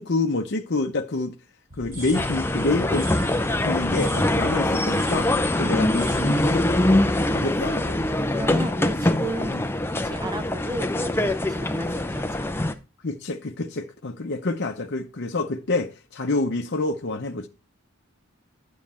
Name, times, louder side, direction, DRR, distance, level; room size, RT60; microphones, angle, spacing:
voice 1, 0.0-1.3 1.8-3.1 3.6-7.0 7.3-8.0 9.5-9.6 13.0-17.5, left 3 dB, 55° left, 0.7 m, -27 dB
sound 1, 1.7-8.6, right 1 dB, 40° right, 3.7 m, -38 dB
sound 2, 2.1-12.7, left 1 dB, 10° left, 0.5 m, -23 dB
voice 2, 7.3-7.8 8.3-9.6 9.9-12.5, right 1 dB, 20° right, 0.8 m, -34 dB
9.5 x 6.4 x 4.2 m
head